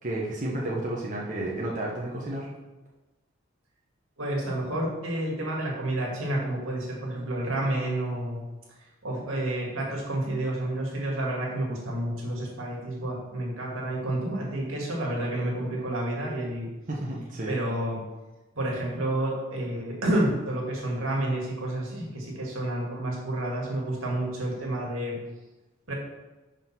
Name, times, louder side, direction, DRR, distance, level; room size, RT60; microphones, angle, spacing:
voice 1, 0.0-2.5 16.9-17.6, right 1 dB, 40° right, -4 dB, 1.1 m, -31 dB
voice 2, 4.2-8.4 9.0-16.7 17.5-18.0 18.6-25.2 25.9-26.0, right 1 dB, 80° right, -2 dB, 2.2 m, -30 dB
5.5 x 5.2 x 5.8 m, 1.1 s
head